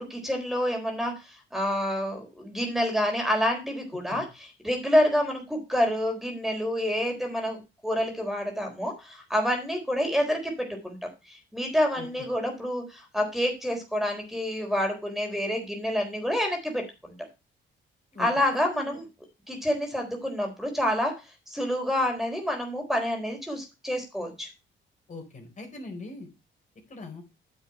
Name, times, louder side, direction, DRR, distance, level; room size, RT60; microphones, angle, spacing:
voice 1, 0.0-4.2 4.6-11.0 11.3-17.1 18.2-19.0 19.5-21.1 21.5-24.5, equal, ahead, 3 dB, 4.1 m, -28 dB
voice 2, 18.1-19.0 25.1-26.3 26.9-27.2, left 2 dB, 40° left, 3 dB, 4.1 m, -41 dB
9.9 x 7.3 x 4.3 m, 0.27 s
cardioid pair, 90°, 20 cm